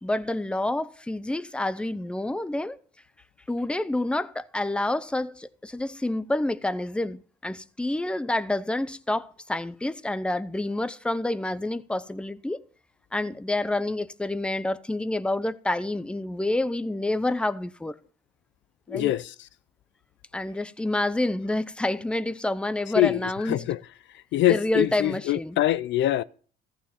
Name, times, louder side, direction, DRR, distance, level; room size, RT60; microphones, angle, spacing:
voice 1, 0.0-2.8 3.5-12.6 13.1-18.0 18.9-19.1 20.3-23.7 24.5-25.6, left 2 dB, 5° left, 0.7 m, -28 dB
voice 2, 18.9-19.3 23.0-23.2 23.5-23.8 24.3-26.2, left 14 dB, 60° left, 0.5 m, -23 dB
14.5 x 7.0 x 7.1 m
supercardioid pair, 85°, 21 cm